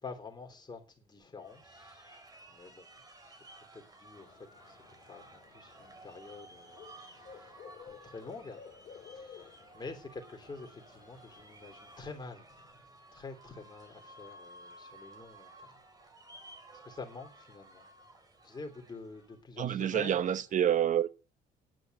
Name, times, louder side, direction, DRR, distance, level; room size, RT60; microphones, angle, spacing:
voice 1, 0.0-2.9 3.7-4.8 5.1-8.6 9.0-12.9 13.1-15.8 16.8-17.9 18.4-20.2, left 4 dB, 25° left, 3.4 m, -47 dB
sound 1, 1.4-19.4, right 2 dB, 20° right, 3.4 m, -55 dB
sound 2, 4.1-12.1, left 6 dB, 50° left, 1.9 m, -54 dB
voice 2, 19.6-21.1, right 10 dB, 50° right, 0.9 m, -28 dB
10.5 x 8.9 x 8.0 m
cardioid pair, 110°, 17 cm